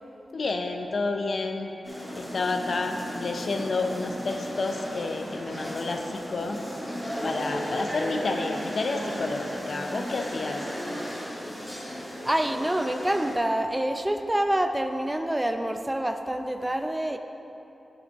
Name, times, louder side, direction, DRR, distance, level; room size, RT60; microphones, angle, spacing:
voice 1, 0.3-1.7 2.1-6.6 7.2-10.6, left 3 dB, 65° left, 4 dB, 0.6 m, -30 dB
sound 1, 1.8-13.4, equal, 10° left, 1.5 m, -35 dB
voice 2, 12.2-17.2, right 1 dB, 15° right, 6 dB, 0.5 m, -27 dB
10.0 x 5.3 x 3.5 m, 3.0 s
cardioid pair, 55°, 0 cm